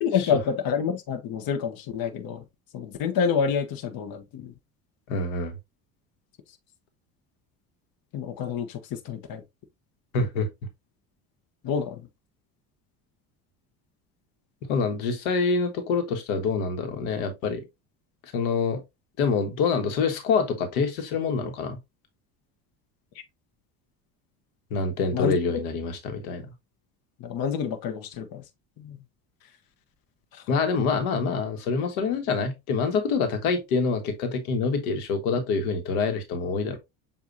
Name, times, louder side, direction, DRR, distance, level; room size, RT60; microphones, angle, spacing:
voice 1, 0.0-2.4 2.7-4.5 8.1-9.4 11.6-12.0 25.1-25.3 27.2-28.4 28.8-29.0 30.3-30.4, left 7 dB, 55° left, 1.1 m, -28 dB
voice 2, 5.1-5.5 10.1-10.5 14.6-17.7 18.3-18.8 19.2-21.8 24.7-26.5 30.5-36.8, left 4 dB, 85° left, 1.4 m, -26 dB
7.2 x 2.7 x 2.7 m
supercardioid pair, 90°, 42 cm